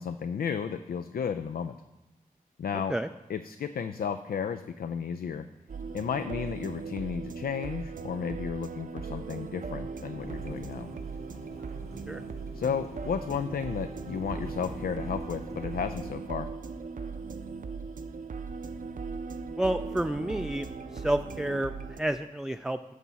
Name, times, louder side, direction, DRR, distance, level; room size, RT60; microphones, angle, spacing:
voice 1, 0.0-1.8 2.6-2.9 3.3-5.4 5.9-10.9 12.5-16.5, left 7 dB, 75° left, 10 dB, 0.4 m, -33 dB
sound 1, 5.7-22.0, right 5 dB, 60° right, 0.6 m, -39 dB
Thunderstorm / Rain, 10.2-16.1, left 1 dB, 40° left, 1.4 m, -45 dB
voice 2, 19.6-20.7 20.9-22.9, right 1 dB, 5° right, 9 dB, 0.3 m, -30 dB
10.0 x 6.1 x 4.1 m, 1.0 s
cardioid pair, 45°, 16 cm